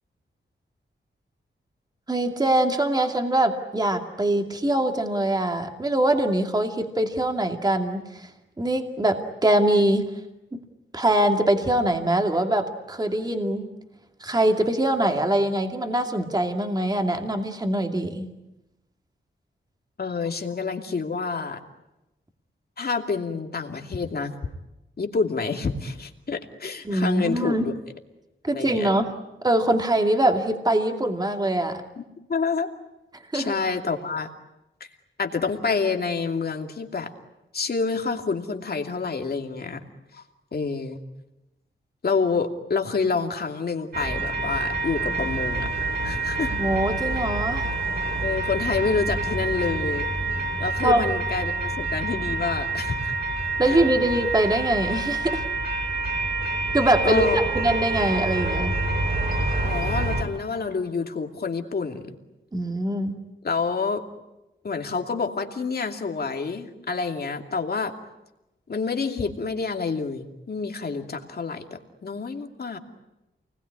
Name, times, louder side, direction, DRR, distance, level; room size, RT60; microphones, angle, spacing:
voice 1, 2.1-8.3 8.6-10.1 10.5-10.6 10.9-13.7 14.2-18.3 26.9-27.8 28.4-29.1 29.4-31.8 33.3-33.5 46.5-47.7 50.8-51.0 53.6-55.4 56.7-58.7 62.5-63.2, right 1 dB, 20° right, 4 dB, 2.4 m, -23 dB
voice 2, 20.0-21.6 22.8-24.3 25.0-27.7 28.5-28.9 32.0-32.7 33.3-34.3 34.8-34.9 35.2-37.1 37.5-39.8 40.1-40.2 40.5-41.0 42.0-46.6 48.2-50.1 50.6-53.1 53.7-53.8 57.0-57.4 59.6-62.1 63.4-64.0 64.6-67.9 68.7-72.8, left 4 dB, 50° left, 4 dB, 2.6 m, -28 dB
sound 1, 43.9-60.2, right 2 dB, 50° right, 5.6 m, -27 dB
28.5 x 20.5 x 9.8 m, 0.96 s
wide cardioid pair, 125°, 20 cm